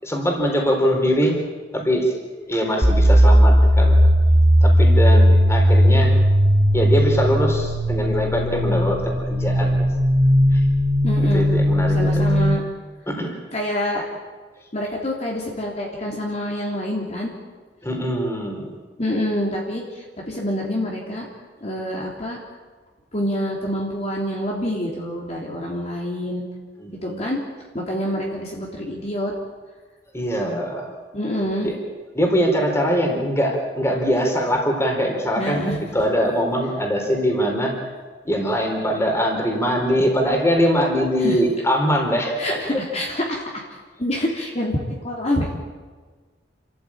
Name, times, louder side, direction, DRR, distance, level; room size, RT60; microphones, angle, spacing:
voice 1, 0.0-1.4 1.7-4.0 4.6-6.1 6.7-9.9 10.5-10.6 11.3-12.2 13.1-13.4 17.8-18.7 26.8-27.3 30.1-30.9 31.6-31.8 32.1-37.7 38.2-42.4, equal, 15° left, 2 dB, 4.3 m, -22 dB
sound 1, 2.8-12.6, equal, 35° right, 2.6 m, -16 dB
voice 2, 11.0-11.4 11.9-12.6 13.5-14.0 14.7-17.3 19.0-21.3 21.6-22.4 23.1-26.4 27.0-27.4 27.7-29.3 31.1-31.7 35.4-35.8 41.2-41.4 42.4-43.6 44.0-45.5, left 1 dB, 40° left, -2 dB, 3.4 m, -26 dB
29.0 x 14.5 x 8.9 m, 1.4 s
head